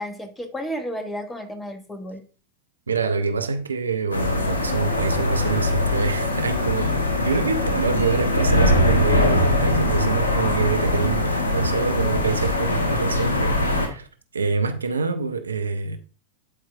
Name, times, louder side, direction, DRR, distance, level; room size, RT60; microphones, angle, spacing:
voice 1, 0.0-2.2, equal, 10° left, 1.1 m, -32 dB
voice 2, 2.9-14.1 14.3-16.0, right 5 dB, 75° right, 0.6 m, -26 dB
sound 1, 4.1-13.9, left 1 dB, 75° left, 1.3 m, -22 dB
11.5 x 4.7 x 2.4 m
figure-of-eight pair, 90°, 0 cm